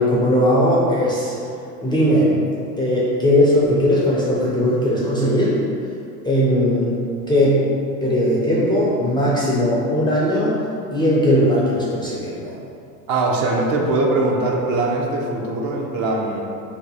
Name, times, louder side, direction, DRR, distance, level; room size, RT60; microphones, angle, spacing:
voice 1, 0.0-1.3 1.8-2.4 2.8-5.6 6.2-7.0 7.3-7.7 8.0-10.6 10.9-12.5, equal, 10° left, -7 dB, 0.4 m, -18 dB
voice 2, 13.1-16.4, right 2 dB, 45° right, -1 dB, 0.6 m, -21 dB
2.9 x 2.3 x 3.9 m, 2.5 s
hypercardioid pair, 85°, 48 cm